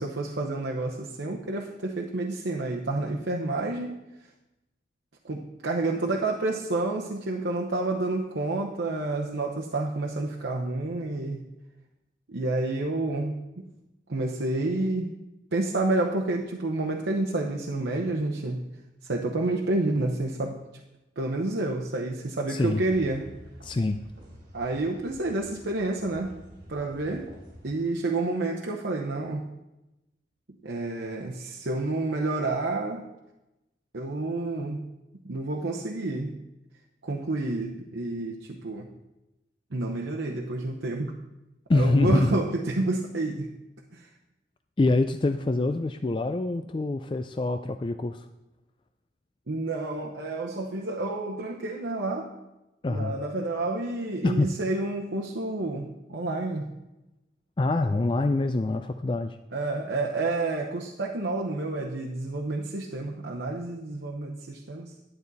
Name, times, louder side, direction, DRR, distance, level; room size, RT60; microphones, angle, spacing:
voice 1, 0.0-4.0 5.2-11.4 12.3-13.6 14.1-15.1 15.5-18.6 19.1-20.6 21.2-23.2 24.5-26.3 26.7-27.3 27.6-29.5 30.6-33.0 33.9-34.8 35.2-36.3 37.0-38.9 39.7-41.1 41.7-43.5 43.9-44.1 49.5-52.3 52.9-56.7 59.5-64.9, right 2 dB, 85° right, 0 dB, 0.9 m, -29 dB
voice 2, 22.5-22.8 23.6-24.0 41.7-42.4 44.8-48.3 52.8-53.2 54.2-54.5 57.6-59.4, left 2 dB, 25° left, 8 dB, 0.3 m, -25 dB
sound 1, 22.5-27.7, equal, 60° right, 3.3 m, -48 dB
11.5 x 8.9 x 4.1 m, 0.97 s
head